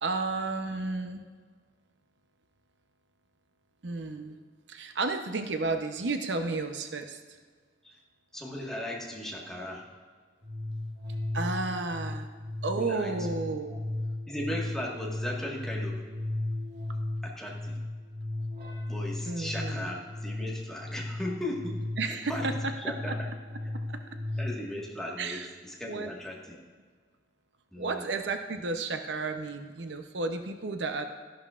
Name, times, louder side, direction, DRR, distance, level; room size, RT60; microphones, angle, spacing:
voice 1, 0.0-1.3 3.8-4.4 4.7-7.2 11.3-12.3 12.6-13.8 19.2-19.9 22.0-22.7 23.1-23.2 23.9-24.0 25.2-25.5 25.8-26.1 27.8-31.1, right 3 dB, 80° right, 6 dB, 0.7 m, -32 dB
voice 2, 8.3-9.8 12.8-13.3 13.6-13.8 14.3-16.0 17.2-17.8 18.9-21.8 22.3-23.3 24.4-26.4 27.7-28.0, left 1 dB, 5° left, -3 dB, 1.5 m, -37 dB
sound 1, 10.4-24.5, left 1 dB, 55° right, 1.9 m, -35 dB
13.0 x 11.0 x 2.5 m, 1.5 s
head